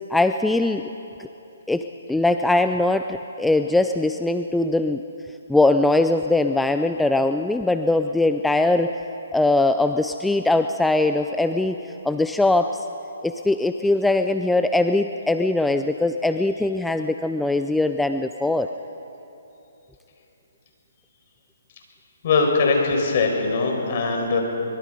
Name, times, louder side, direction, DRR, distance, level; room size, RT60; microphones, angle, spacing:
voice 1, 0.1-0.8 1.7-5.0 5.5-8.9 9.3-11.8 12.0-12.8 13.2-18.7, left 2 dB, 5° left, 8 dB, 0.4 m, -21 dB
voice 2, 22.2-24.4, left 4 dB, 45° left, 2 dB, 5.1 m, -21 dB
24.0 x 22.0 x 5.2 m, 3.0 s
hypercardioid pair, 150°, 0 cm